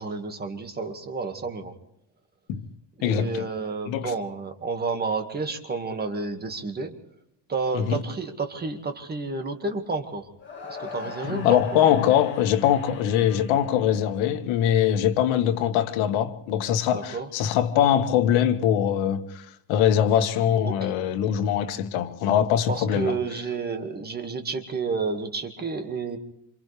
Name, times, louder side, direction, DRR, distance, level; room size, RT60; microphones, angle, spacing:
voice 1, 0.0-1.7 3.0-7.0 7.5-10.3 10.7-11.8 16.9-17.3 20.6-20.9 22.7-26.2, right 4 dB, 20° right, 2.0 m, -30 dB
voice 2, 3.0-3.5 3.9-4.1 7.7-8.0 11.3-23.2, left 10 dB, 85° left, 1.8 m, -22 dB
sound 1, 10.4-14.6, left 4 dB, 25° left, 7.3 m, -41 dB
28.5 x 27.0 x 3.4 m
cardioid pair, 165°, 45 cm